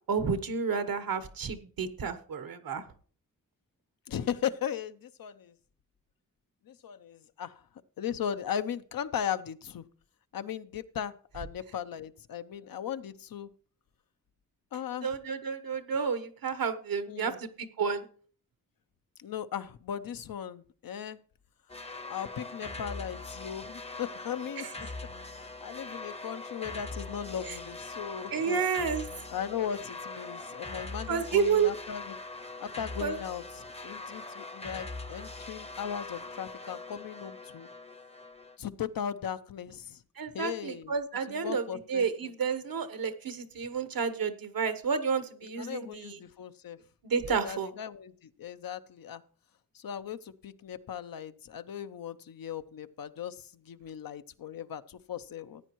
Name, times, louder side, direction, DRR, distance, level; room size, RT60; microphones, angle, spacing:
voice 1, 0.1-2.8 15.0-17.5 17.8-18.0 28.3-29.0 31.1-31.7 33.0-33.2 40.2-46.2 47.0-47.7, right 6 dB, 80° right, 11 dB, 1.1 m, -30 dB
voice 2, 4.1-5.5 6.7-7.6 8.0-9.8 10.3-13.5 14.7-15.1 17.1-17.4 19.2-21.2 22.1-24.6 25.4-28.6 29.3-32.2 32.6-37.7 38.6-40.0 40.3-40.9 41.3-42.3 45.6-46.8 47.3-49.2 49.7-55.6, left 9 dB, 80° left, 12 dB, 0.7 m, -37 dB
sound 1, 21.7-38.6, left 3 dB, 20° left, 0.6 m, -42 dB
15.0 x 9.1 x 3.0 m, 0.44 s
cardioid pair, 70°, 34 cm